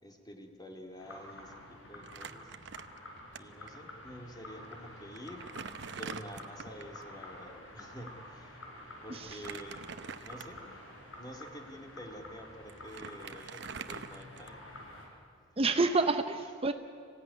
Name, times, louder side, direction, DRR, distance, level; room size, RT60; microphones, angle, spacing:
voice 1, 0.0-2.5 3.3-5.5 6.0-8.6 9.0-9.9 10.2-10.6 11.2-14.6, equal, 20° left, 3 dB, 2.4 m, -48 dB
sound 1, 1.0-15.1, left 1 dB, 85° left, 5.8 m, -49 dB
Crumpling crinkling, 2.0-3.4 3.7-3.8 4.6-4.7 5.2-7.0 9.1-10.7 11.3-11.5 12.4-12.5 12.7-14.8, right 6 dB, 65° right, 0.8 m, -45 dB
voice 2, 9.1-9.4 15.6-16.7, right 3 dB, 30° right, 8 dB, 0.8 m, -28 dB
26.0 x 16.0 x 9.6 m, 2.4 s
head